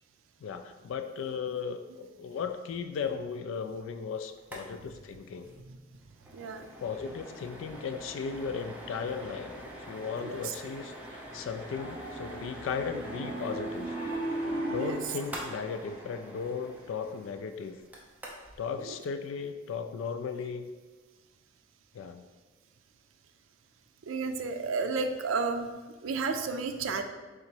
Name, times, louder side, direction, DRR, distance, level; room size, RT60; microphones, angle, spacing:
voice 1, 0.4-5.5 6.8-9.5 9.9-13.9 14.7-17.8 18.6-20.7 21.9-22.2, left 6 dB, 85° left, 9 dB, 0.3 m, -36 dB
sound 1, 4.4-4.7 4.9-5.0 5.3-5.5 5.9-18.6, right 1 dB, 10° right, 0.6 m, -45 dB
voice 2, 6.3-6.7 10.2-10.5 14.8-15.1 18.8-19.0 24.1-25.7 26.0-27.0, right 4 dB, 90° right, 7 dB, 0.4 m, -32 dB
Piano, 11.7-15.2, right 1 dB, 40° left, 1.2 m, -36 dB
3.7 x 2.9 x 4.4 m, 1.3 s
head